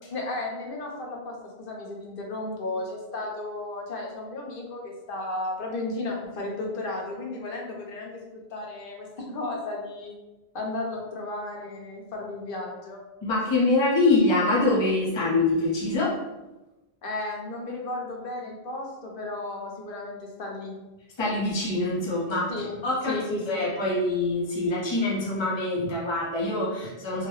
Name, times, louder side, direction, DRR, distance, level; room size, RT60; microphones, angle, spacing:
voice 1, 0.1-10.1 10.5-13.0 17.0-20.7 22.5-22.8 23.1-23.6, left 2 dB, 60° left, 0 dB, 0.9 m, -34 dB
voice 2, 13.2-16.2 21.2-22.5 22.8-23.2 23.5-27.3, left 2 dB, 30° left, -5 dB, 0.7 m, -24 dB
3.3 x 2.2 x 3.0 m, 1.1 s
omnidirectional pair, 1.1 m